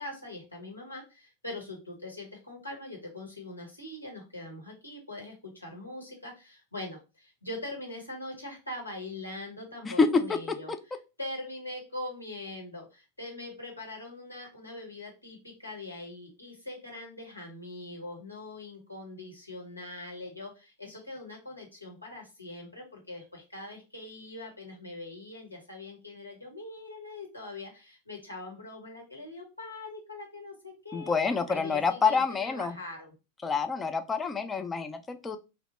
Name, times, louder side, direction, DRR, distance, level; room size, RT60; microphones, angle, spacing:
voice 1, 0.0-10.7 11.2-31.2 31.5-33.1, left 2 dB, 85° left, 0 dB, 1.0 m, -42 dB
voice 2, 9.9-10.6 30.9-32.8 33.4-35.4, left 4 dB, 15° left, 8 dB, 0.4 m, -27 dB
2.8 x 2.0 x 3.0 m, 0.29 s
figure-of-eight pair, 90°, 0 cm